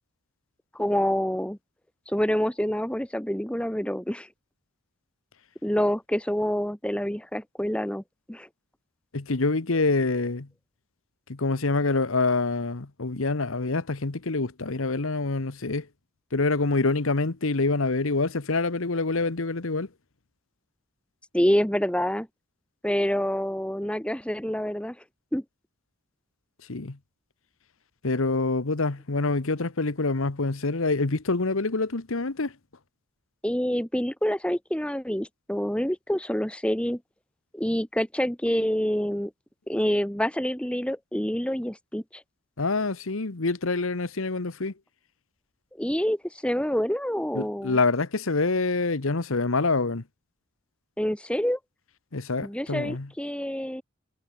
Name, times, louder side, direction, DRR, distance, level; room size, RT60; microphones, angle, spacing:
voice 1, 0.7-1.6 2.1-4.3 5.6-8.0 8.3-8.5 21.3-22.3 22.8-25.0 25.3-25.4 33.4-37.0 37.5-39.3 39.7-42.2 45.8-47.8 51.0-51.6 52.4-53.8, equal, 5° left, 1.2 m, -27 dB
voice 2, 9.1-10.5 11.3-15.9 16.3-19.9 26.7-27.0 28.0-32.5 42.6-44.7 47.3-50.0 52.1-53.1, left 3 dB, 70° left, 1.2 m, -26 dB
head